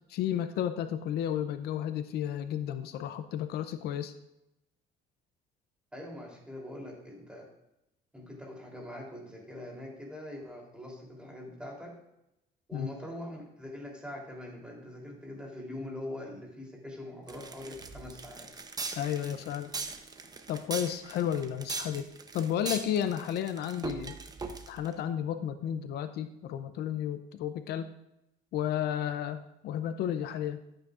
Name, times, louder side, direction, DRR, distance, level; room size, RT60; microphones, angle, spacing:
voice 1, 0.1-4.1 12.7-12.9 19.0-19.7 20.5-24.2 24.7-27.9 28.5-30.6, left 10 dB, 75° left, 10 dB, 0.6 m, -32 dB
voice 2, 5.9-7.5 8.1-11.9 12.7-18.5, left 1 dB, 5° right, -2 dB, 3.3 m, -43 dB
sound 1, 17.3-24.9, right 4 dB, 25° right, 0.8 m, -40 dB
13.0 x 8.8 x 2.5 m, 0.86 s
cardioid pair, 110°, 17 cm